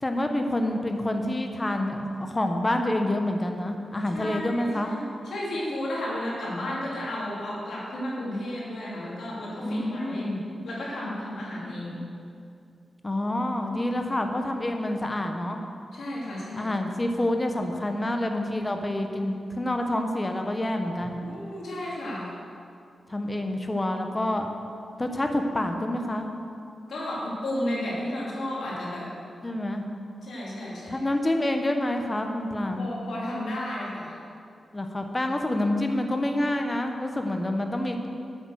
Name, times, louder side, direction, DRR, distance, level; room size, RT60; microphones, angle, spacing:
voice 1, 0.0-4.9 9.6-10.4 13.0-15.6 16.6-21.2 23.1-24.5 25.0-26.3 29.4-29.8 30.9-32.9 34.7-38.0, left 1 dB, 20° left, 4 dB, 0.9 m, -27 dB
voice 2, 4.1-10.2 10.6-12.1 15.9-16.7 21.2-22.4 26.9-29.1 30.2-31.0 32.7-34.2, left 1 dB, 80° left, -6 dB, 2.9 m, -33 dB
8.6 x 8.2 x 6.4 m, 2.5 s
wide cardioid pair, 155°, 0 cm